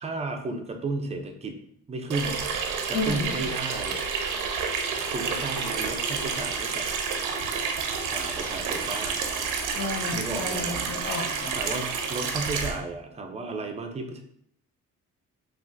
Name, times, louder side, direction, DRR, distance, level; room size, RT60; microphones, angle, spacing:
voice 1, 0.0-1.6 1.9-2.4 2.9-4.0 5.1-6.9 8.1-9.2 10.1-10.8 11.5-14.2, right 3 dB, 20° right, 4 dB, 0.5 m, -33 dB
Water tap faucet / Sink (filling or washing), 2.1-12.7, right 5 dB, 85° right, 0.5 m, -29 dB
voice 2, 2.9-3.3 9.7-11.5, left 3 dB, 50° left, -3 dB, 0.9 m, -32 dB
3.5 x 2.5 x 2.6 m, 0.71 s
cardioid pair, 90°, 30 cm